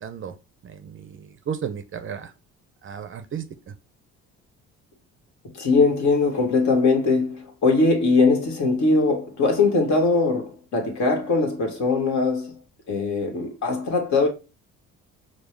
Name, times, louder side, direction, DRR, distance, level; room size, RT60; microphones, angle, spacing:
voice 1, 0.0-0.3 0.6-2.3 2.8-3.7, right 7 dB, 40° right, 0.6 m, -34 dB
voice 2, 5.5-12.6 12.9-14.3, left 3 dB, 60° left, 1.4 m, -21 dB
5.1 x 2.0 x 3.1 m
supercardioid pair, 70°, 33 cm